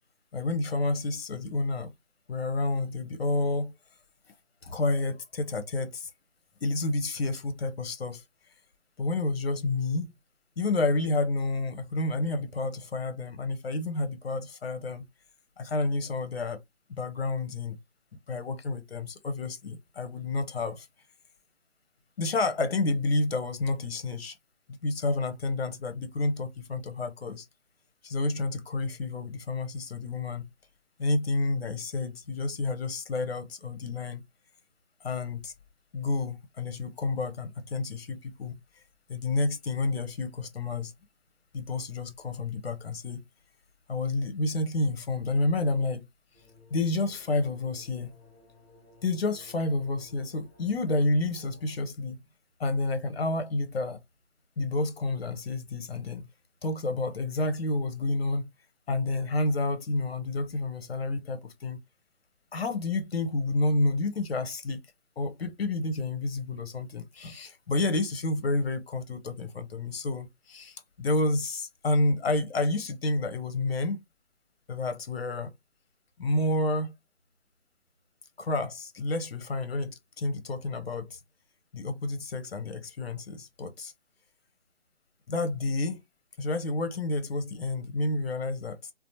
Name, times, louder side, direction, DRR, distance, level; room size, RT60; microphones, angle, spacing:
voice 1, 0.3-1.9 2.3-3.7 4.6-6.1 6.6-8.2 9.0-10.1 10.6-15.0 15.6-16.6 16.9-17.8 18.3-20.9 22.2-24.4 24.8-27.5 28.0-30.4 31.0-34.2 35.0-35.5 35.9-38.6 39.1-40.9 41.5-43.2 43.9-46.1 46.7-48.1 49.0-52.2 52.6-54.0 54.6-56.3 56.6-58.5 58.9-61.8 62.5-64.8 65.2-74.0 74.7-75.5 76.2-76.9 78.4-81.2 81.7-83.9 85.3-86.0 86.4-88.9, left 2 dB, 60° left, 0.7 m, -29 dB
sound 1, 46.3-51.8, left 1 dB, 15° left, 1.2 m, -57 dB
2.7 x 2.0 x 2.7 m
figure-of-eight pair, 155°, 35 cm